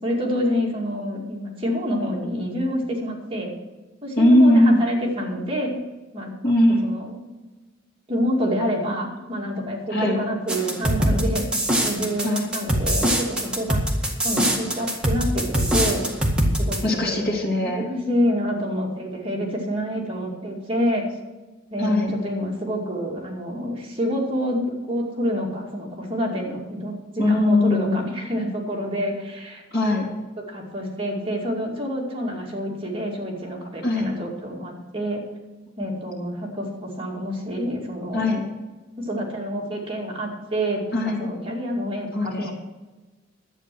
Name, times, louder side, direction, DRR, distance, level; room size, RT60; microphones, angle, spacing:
voice 1, 0.0-3.5 4.0-5.8 6.1-6.3 6.8-7.1 8.1-13.8 14.2-16.1 16.6-21.1 21.7-29.6 30.4-35.2 35.8-38.3 39.0-42.5, equal, 30° right, -2 dB, 2.4 m, -27 dB
voice 2, 4.2-4.8 6.4-6.8 9.9-10.2 12.2-12.5 16.8-17.8 21.8-22.2 27.2-28.0 29.7-30.0 33.8-34.1 38.1-38.4 40.9-41.3 42.1-42.5, left 1 dB, 55° left, -1 dB, 3.1 m, -19 dB
sound 1, 10.5-16.8, right 1 dB, 5° right, 1.9 m, -22 dB
11.5 x 8.9 x 6.1 m, 1.2 s
head